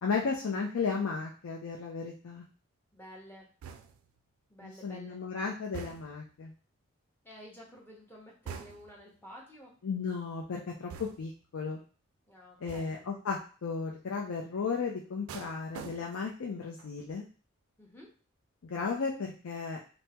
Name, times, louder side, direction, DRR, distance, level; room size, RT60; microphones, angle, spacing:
voice 1, 0.0-2.4 4.6-6.5 9.8-11.8 12.6-17.3 18.6-19.8, left 5 dB, 85° left, -1 dB, 0.5 m, -34 dB
voice 2, 2.9-3.5 4.5-5.2 7.2-9.7 12.3-13.0 17.8-18.1, equal, 10° left, -3 dB, 0.7 m, -51 dB
sound 1, 3.6-4.2 5.7-6.3 8.5-9.1 10.9-11.5 12.7-13.1 15.3-16.4 16.8-17.1, right 6 dB, 80° right, 0.3 m, -46 dB
3.4 x 2.0 x 2.8 m, 0.38 s
head